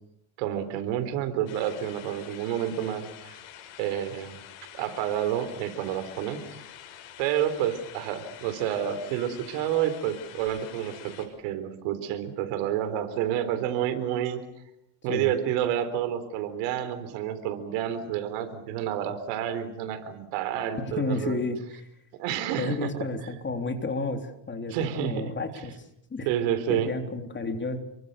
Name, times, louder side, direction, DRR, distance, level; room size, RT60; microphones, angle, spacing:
voice 1, 0.4-3.3 3.8-4.4 4.7-6.4 7.2-14.4 15.0-21.4 22.2-22.9 24.7-25.6 26.3-26.9, right 10 dB, 85° right, 11 dB, 4.1 m, -29 dB
sound 1, 1.5-11.3, left 10 dB, 75° left, 6.9 m, -47 dB
voice 2, 21.0-21.9 22.6-25.9 26.1-26.3 26.7-27.8, left 3 dB, 20° left, 6 dB, 3.5 m, -31 dB
29.0 x 24.0 x 6.8 m, 0.76 s
cardioid pair, 120°, 50 cm